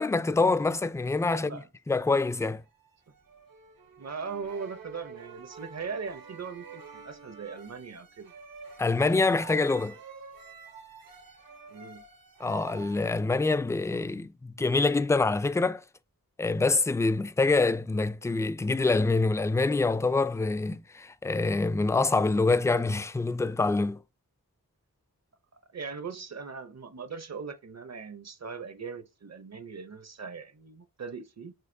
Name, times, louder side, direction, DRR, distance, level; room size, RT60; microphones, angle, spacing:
voice 1, 0.0-1.6 1.9-2.6 8.8-10.0 12.4-15.8 16.4-24.0, left 3 dB, 10° left, 0.3 m, -25 dB
voice 2, 1.3-1.7 4.0-8.3 11.7-12.0 25.7-31.5, right 5 dB, 50° right, 0.7 m, -40 dB
sound 1, 2.5-13.0, right 5 dB, 75° right, 1.0 m, -48 dB
6.3 x 2.4 x 2.7 m
cardioid pair, 45°, 35 cm